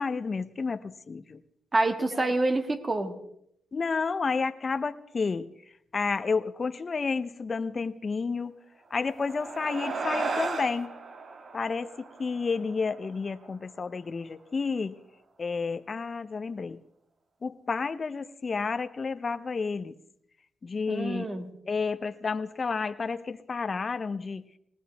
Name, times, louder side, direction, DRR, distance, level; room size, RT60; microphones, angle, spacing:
voice 1, 0.0-1.4 2.1-2.3 3.7-5.5 5.9-8.5 8.9-10.9 11.5-11.9 12.2-14.9 15.4-16.8 17.4-19.9 20.6-21.3 21.7-24.4, left 4 dB, 45° left, 10 dB, 0.8 m, -31 dB
voice 2, 1.7-3.2 20.9-21.5, right 2 dB, 30° right, 7 dB, 2.0 m, -27 dB
sound 1, 8.9-13.7, right 4 dB, 55° right, 1.8 m, -36 dB
19.5 x 19.0 x 3.5 m, 0.74 s
cardioid pair, 65°, 0 cm